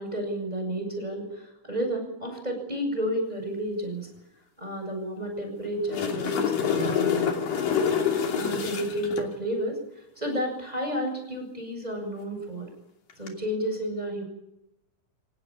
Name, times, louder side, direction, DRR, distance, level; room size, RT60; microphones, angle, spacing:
voice 1, 0.0-4.1 4.6-7.4 8.3-9.8 10.2-12.7 13.2-14.2, equal, 10° right, 3 dB, 7.6 m, -31 dB
sound 1, 5.7-9.3 13.1-13.3, left 7 dB, 85° left, 4.6 m, -26 dB
29.0 x 17.0 x 8.8 m, 0.86 s
omnidirectional pair, 3.8 m